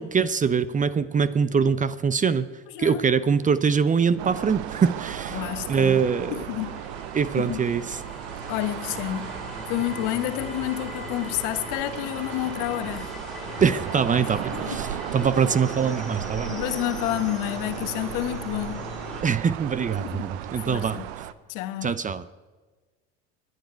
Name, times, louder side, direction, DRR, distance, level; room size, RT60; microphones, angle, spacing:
voice 1, 0.0-2.5 2.8-5.4 5.7-6.4 7.1-8.0 13.6-16.5 19.2-21.0 21.8-22.2, right 6 dB, 25° right, 0.7 m, -23 dB
sound 1, 3.2-19.2, left 2 dB, ahead, 5.6 m, -40 dB
sound 2, 4.2-21.3, right 12 dB, 75° right, 0.9 m, -36 dB
voice 2, 5.3-6.0 6.3-6.8 7.4-7.6 8.5-9.4 9.7-13.1 14.5-14.8 16.5-18.9 20.0-20.3 20.6-21.1 21.5-22.0, left 14 dB, 65° left, 1.3 m, -29 dB
24.5 x 9.5 x 4.5 m
hypercardioid pair, 85°, 33 cm